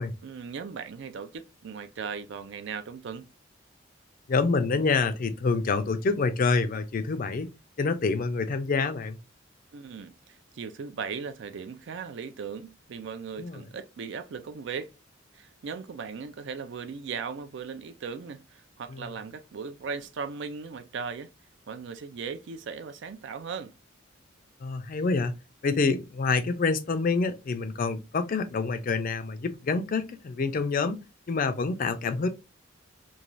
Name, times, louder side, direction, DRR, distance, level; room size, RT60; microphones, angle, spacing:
voice 1, 0.2-3.3 9.7-14.9 15.3-21.3 21.7-23.7, right 5 dB, 60° right, 0.4 m, -38 dB
voice 2, 4.3-7.5 7.8-9.2 13.4-13.6 18.9-19.1 24.6-25.4 25.6-31.0 31.3-32.3, left 4 dB, 45° left, 0.4 m, -27 dB
3.1 x 2.3 x 2.5 m
head